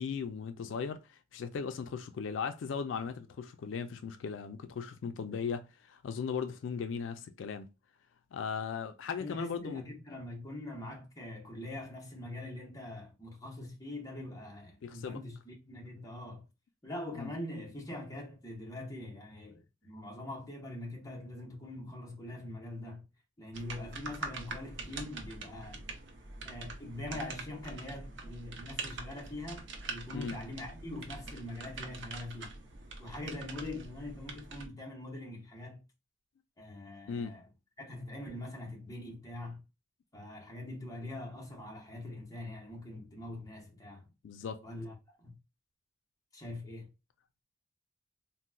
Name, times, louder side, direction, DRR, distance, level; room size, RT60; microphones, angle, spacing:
voice 1, 0.0-7.7 8.3-9.8 14.8-15.2 17.2-17.3 30.1-30.4 37.1-37.4 44.2-44.6, left 6 dB, 90° left, 0.4 m, -37 dB
voice 2, 9.2-16.4 16.8-23.0 23.4-25.9 26.4-32.5 33.0-35.8 36.6-37.5 37.8-39.6 40.1-44.1 44.6-45.4 46.3-46.9, left 1 dB, 20° left, 1.0 m, -43 dB
sound 1, 23.5-34.7, right 3 dB, 75° right, 0.7 m, -44 dB
3.9 x 2.1 x 2.2 m
head